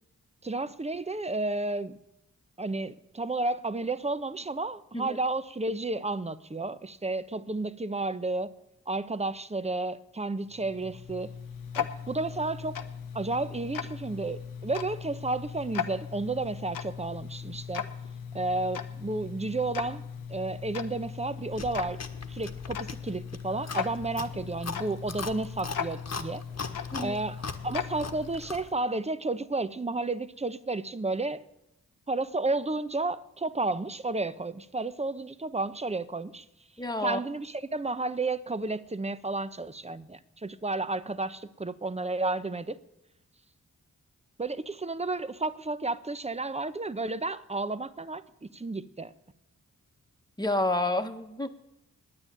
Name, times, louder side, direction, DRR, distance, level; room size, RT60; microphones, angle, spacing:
voice 1, 0.4-2.0 2.6-8.5 8.9-11.3 11.7-12.8 13.1-17.8 18.3-20.0 20.3-22.0 22.3-26.4 27.0-31.4 32.1-36.4 37.0-42.8 44.4-49.1, right 2 dB, 20° right, 13 dB, 0.9 m, -32 dB
Tick-tock, 10.5-28.8, left 7 dB, 70° left, 1.1 m, -38 dB
Chewing mastication, 21.5-28.7, left 4 dB, 50° left, 1.4 m, -40 dB
voice 2, 36.8-37.2 50.4-51.5, left 2 dB, 10° left, 6 dB, 1.4 m, -29 dB
9.7 x 9.1 x 9.9 m, 0.87 s
cardioid pair, 45°, 34 cm